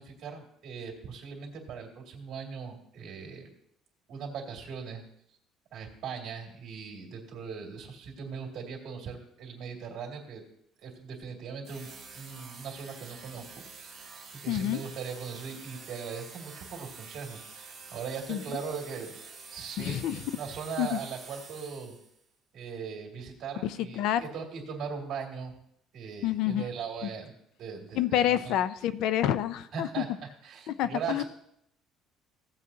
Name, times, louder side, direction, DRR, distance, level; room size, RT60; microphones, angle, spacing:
voice 1, 0.0-3.5 4.1-5.0 5.7-10.4 10.8-11.9 12.1-13.6 13.9-19.2 19.5-20.1 20.3-21.9 22.5-25.5 25.9-27.3 27.6-28.5 29.7-30.1 30.4-31.2, right 6 dB, 45° right, 0 dB, 2.3 m, -39 dB
sound 1, 11.6-22.2, right 4 dB, 15° right, 2.3 m, -47 dB
voice 2, 14.5-14.8 18.3-18.4 19.8-20.2 20.8-21.0 23.6-24.2 26.2-26.7 27.0-27.1 28.0-30.0 30.7-31.2, left 11 dB, 65° left, 14 dB, 0.4 m, -28 dB
16.0 x 7.6 x 2.8 m, 0.74 s
cardioid pair, 170°, 0 cm